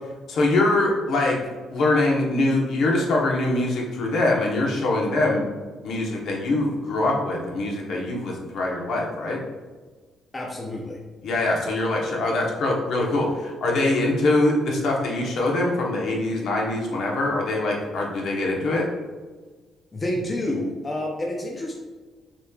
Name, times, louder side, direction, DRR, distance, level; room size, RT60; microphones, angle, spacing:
voice 1, 0.3-1.4 1.7-5.5 5.8-9.4 11.2-18.9, left 2 dB, 60° left, -1 dB, 1.0 m, -23 dB
voice 2, 10.3-11.0 19.9-21.8, left 1 dB, 20° left, -1 dB, 0.5 m, -29 dB
6.6 x 3.1 x 2.4 m, 1.4 s
cardioid pair, 160°, 0 cm